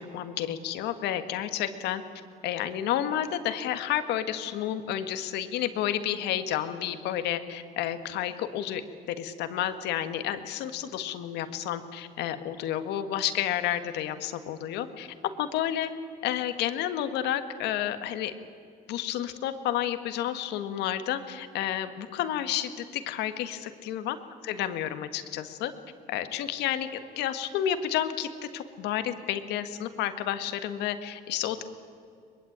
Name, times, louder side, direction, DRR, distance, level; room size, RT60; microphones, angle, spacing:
voice 1, 0.0-2.0 2.4-8.8 9.2-15.9 16.2-18.3 18.9-24.2 24.5-25.7 26.1-31.6, left 11 dB, 85° left, 9 dB, 1.7 m, -31 dB
22.5 x 22.0 x 8.8 m, 2.4 s
cardioid pair, 110°, 17 cm